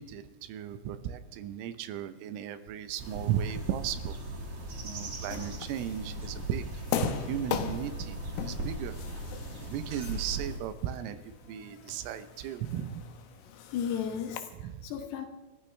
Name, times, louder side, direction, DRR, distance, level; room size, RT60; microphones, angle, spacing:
voice 1, 0.0-4.2 4.8-8.2 8.4-9.0 9.7-13.0 14.6-14.8, right 10 dB, 85° right, 10 dB, 3.6 m, -36 dB
sound 1, 3.0-10.6, right 2 dB, 40° right, 2.2 m, -39 dB
sound 2, 5.3-14.4, left 9 dB, 90° left, 3.7 m, -39 dB
voice 2, 13.7-15.3, left 8 dB, 70° left, 5 dB, 2.9 m, -34 dB
29.5 x 13.5 x 3.4 m, 1.1 s
omnidirectional pair, 5.7 m